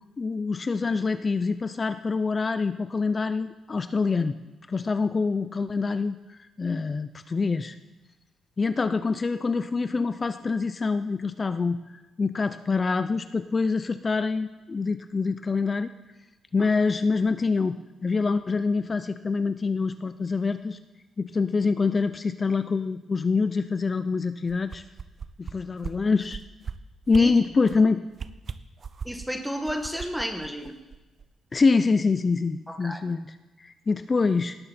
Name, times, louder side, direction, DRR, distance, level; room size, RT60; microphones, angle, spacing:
voice 1, 0.2-4.3 4.7-6.2 6.6-7.8 8.6-11.8 12.2-15.9 16.5-20.8 21.2-24.8 25.4-26.4 27.1-28.0 31.5-34.6, left 4 dB, 30° left, 11 dB, 0.5 m, -25 dB
sound 1, 24.5-25.5 25.8-25.9 26.3-26.7 27.1-27.2 27.6-27.8 28.1-29.3 29.7-31.3 31.6-31.7, right 6 dB, 40° right, 0.6 m, -37 dB
voice 2, 29.0-30.7 32.7-33.0, equal, ahead, 5 dB, 1.2 m, -31 dB
18.0 x 12.5 x 4.3 m, 1.1 s
cardioid pair, 125°, 0 cm